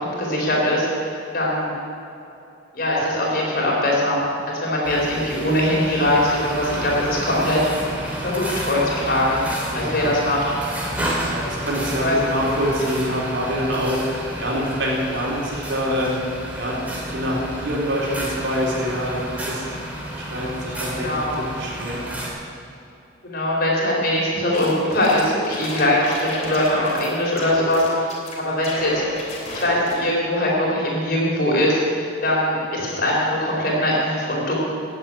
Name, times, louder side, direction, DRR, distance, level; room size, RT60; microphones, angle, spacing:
voice 1, 0.2-1.0 1.3-1.7 2.7-4.2 4.6-7.8 8.2-9.4 9.7-10.4 12.0-12.2 20.9-21.3 23.2-28.0 28.4-29.2 29.5-31.9 32.2-34.5, left 1 dB, 50° left, -4 dB, 4.6 m, -21 dB
sound 1, 4.8-22.3, right 1 dB, 10° right, 2.7 m, -31 dB
voice 2, 9.7-10.1 11.3-14.0 14.4-16.2 16.5-16.8 17.1-19.6 20.1-22.0, equal, 65° right, -4 dB, 4.0 m, -25 dB
sound 2, 24.3-27.1 27.4-28.3 28.6-30.0, left 1 dB, 35° left, 3.2 m, -31 dB
16.0 x 7.9 x 9.3 m, 2.8 s
head